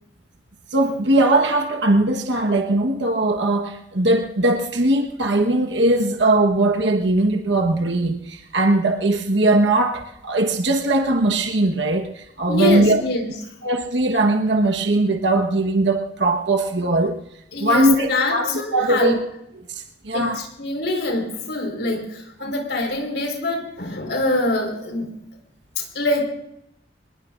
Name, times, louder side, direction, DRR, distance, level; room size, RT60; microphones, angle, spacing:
voice 1, 0.7-13.0 13.6-17.2 17.6-19.2 19.7-20.4 22.4-22.5, right 2 dB, 80° right, 3 dB, 1.3 m, -20 dB
voice 2, 12.5-13.3 17.5-19.2 20.1-25.1 25.8-26.2, left 2 dB, 70° left, 3 dB, 4.7 m, -24 dB
25.0 x 20.5 x 2.6 m, 0.78 s
head